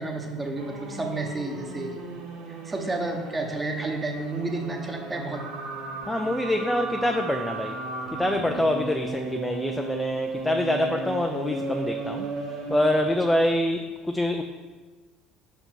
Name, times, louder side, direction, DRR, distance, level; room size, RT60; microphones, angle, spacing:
voice 1, 0.0-2.0 2.5-5.4 8.5-8.6, right 2 dB, 20° right, 2 dB, 1.1 m, -31 dB
sound 1, 0.6-13.3, right 3 dB, 65° right, 0.9 m, -35 dB
voice 2, 6.1-7.8 8.1-12.3 12.7-14.4, left 1 dB, 10° left, 4 dB, 0.4 m, -25 dB
5.3 x 4.4 x 4.4 m, 1.3 s
hypercardioid pair, 70°, 0 cm